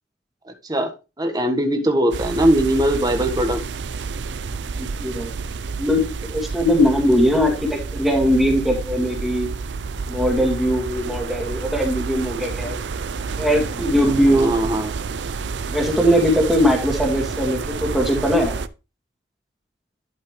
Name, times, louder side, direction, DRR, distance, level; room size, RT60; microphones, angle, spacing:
voice 1, 1.2-3.6 14.2-14.9, right 1 dB, 25° right, 4 dB, 1.5 m, -20 dB
sound 1, 2.1-18.7, right 4 dB, 80° right, 0.5 m, -29 dB
voice 2, 4.8-5.3 5.8-9.5 10.1-12.8 13.4-14.5 15.7-18.6, equal, ahead, 1 dB, 2.1 m, -20 dB
12.0 x 5.5 x 3.2 m, 0.30 s
head